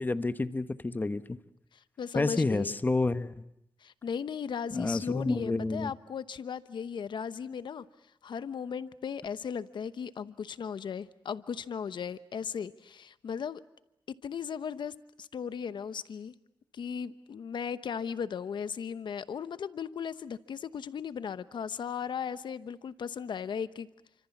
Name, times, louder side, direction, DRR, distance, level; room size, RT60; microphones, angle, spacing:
voice 1, 0.0-1.4 2.1-3.3 4.7-5.9, left 3 dB, 20° left, 12 dB, 1.2 m, -29 dB
voice 2, 1.7-2.7 3.8-7.8 8.2-13.6 14.2-16.3 16.7-23.9, left 7 dB, 70° left, 13 dB, 1.0 m, -37 dB
29.5 x 25.5 x 7.2 m, 0.82 s
wide cardioid pair, 100°, 8 cm